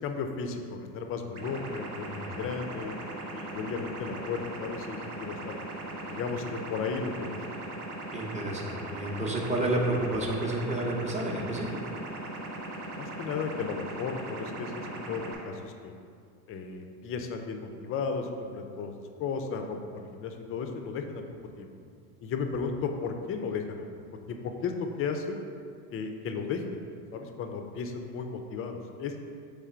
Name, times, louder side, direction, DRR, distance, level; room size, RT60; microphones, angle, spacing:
voice 1, 0.0-2.9 3.3-5.6 6.1-7.4 13.0-15.9 16.5-18.9 19.2-21.2 21.6-21.7 22.2-23.9 24.3-25.4 25.9-26.8 27.1-29.2, left 5 dB, 30° left, 5 dB, 0.4 m, -34 dB
sound 1, 1.3-15.3, right 1 dB, 60° right, 1.1 m, -39 dB
voice 2, 8.1-11.7, right 1 dB, 15° right, -2 dB, 0.7 m, -30 dB
3.7 x 3.3 x 4.4 m, 2.3 s
hypercardioid pair, 90°, 45 cm